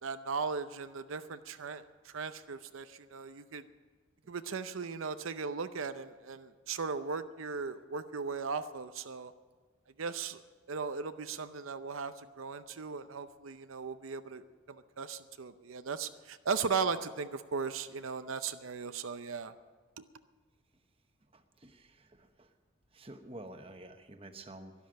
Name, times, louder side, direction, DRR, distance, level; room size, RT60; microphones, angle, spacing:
voice 1, 0.0-1.8 2.1-3.6 4.3-9.3 10.0-10.4 10.7-19.5 20.0-20.1, right 5 dB, 85° right, 10 dB, 0.6 m, -37 dB
voice 2, 21.3-22.5 22.9-24.7, right 1 dB, 30° right, 7 dB, 1.0 m, -50 dB
13.0 x 11.5 x 8.9 m, 1.5 s
head